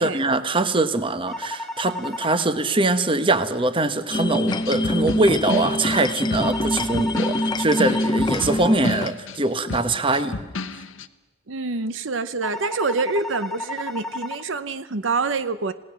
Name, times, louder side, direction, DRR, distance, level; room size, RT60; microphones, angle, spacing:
voice 1, 0.0-10.3, right 2 dB, 25° right, 11 dB, 1.1 m, -22 dB
sound 1, 1.3-2.4 6.4-8.4 12.4-14.4, left 2 dB, ahead, 1.4 m, -33 dB
sound 2, 4.1-9.1, left 1 dB, 20° left, 0.7 m, -25 dB
sound 3, 4.5-11.1, left 3 dB, 80° left, 1.0 m, -32 dB
voice 2, 11.5-15.7, right 4 dB, 75° right, 13 dB, 0.8 m, -26 dB
27.5 x 17.5 x 6.3 m, 1.2 s
head